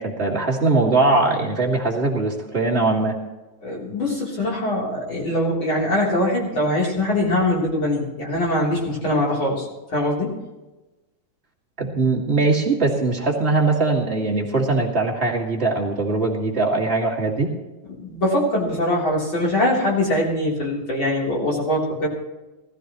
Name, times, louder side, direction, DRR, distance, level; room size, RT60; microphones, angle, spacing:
voice 1, 0.0-3.2 11.8-17.5, right 3 dB, 25° right, -2 dB, 2.1 m, -21 dB
voice 2, 3.6-10.3 18.0-22.1, left 1 dB, 40° left, -4 dB, 4.3 m, -22 dB
20.0 x 14.0 x 3.1 m, 1.1 s
omnidirectional pair, 3.4 m